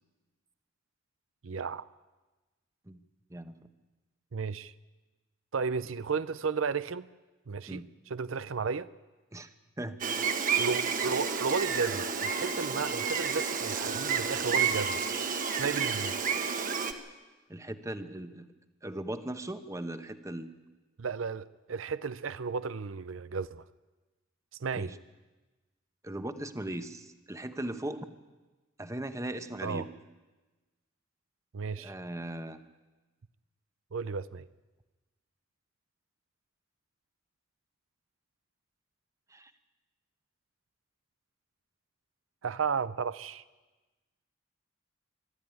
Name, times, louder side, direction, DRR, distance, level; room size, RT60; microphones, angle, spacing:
voice 1, 1.4-1.9 4.3-4.7 5.5-7.1 7.5-8.9 10.6-15.0 15.5-16.1 21.0-23.6 24.6-24.9 29.6-29.9 31.5-31.9 33.9-34.5 42.4-43.4, right 5 dB, 90° right, 15 dB, 0.6 m, -33 dB
Gull seagull, 10.0-16.9, right 6 dB, 45° right, 1.3 m, -30 dB
voice 2, 17.5-18.5 18.8-20.5 24.7-25.0 26.0-28.1 28.8-29.9 31.8-32.6 39.3-39.5, right 1 dB, 15° right, 9 dB, 1.0 m, -38 dB
24.5 x 12.5 x 9.7 m, 1.2 s
head